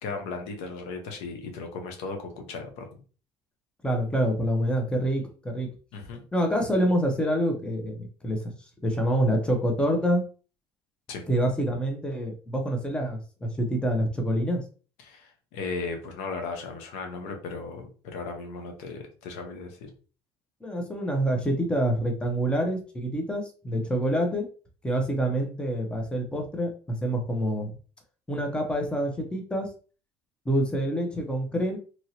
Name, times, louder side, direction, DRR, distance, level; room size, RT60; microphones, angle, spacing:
voice 1, 0.0-2.9 5.9-6.2 11.1-11.2 15.0-19.9, left 4 dB, 85° left, 4 dB, 0.8 m, -36 dB
voice 2, 3.8-5.7 6.3-8.5 8.8-10.2 11.3-14.6 20.6-24.4 24.8-27.7 28.3-29.7 30.5-31.8, right 1 dB, 10° left, 3 dB, 0.7 m, -26 dB
2.9 x 2.7 x 2.8 m, 0.38 s
cardioid pair, 110°, 10 cm